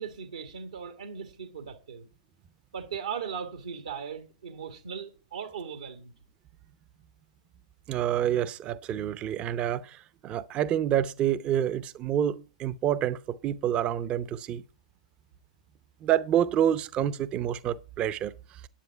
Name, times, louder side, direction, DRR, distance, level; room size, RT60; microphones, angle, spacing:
voice 1, 0.0-2.1 2.7-6.1, right 7 dB, 80° right, 1.6 m, -38 dB
voice 2, 7.9-14.6 16.0-18.6, right 10 dB, 30° right, 0.6 m, -28 dB
10.0 x 9.3 x 4.6 m
hypercardioid pair, 110°, 4 cm